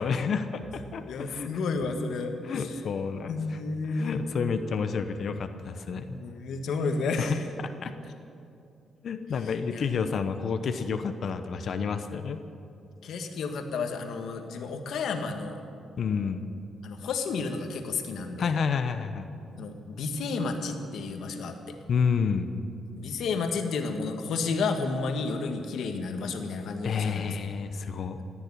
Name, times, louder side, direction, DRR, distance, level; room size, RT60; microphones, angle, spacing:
voice 1, 0.0-1.5 2.4-6.2 7.2-7.4 7.6-7.9 9.0-12.4 16.0-16.5 18.4-19.3 21.9-22.5 26.8-28.2, left 6 dB, 60° left, 8 dB, 0.8 m, -30 dB
voice 2, 1.1-2.7 3.3-4.3 6.0-7.4 9.7-9.8 13.0-15.6 16.8-18.5 19.6-21.8 22.9-27.3, left 4 dB, 75° left, 5 dB, 1.6 m, -31 dB
15.0 x 9.8 x 9.9 m, 2.6 s
cardioid pair, 105°, 0 cm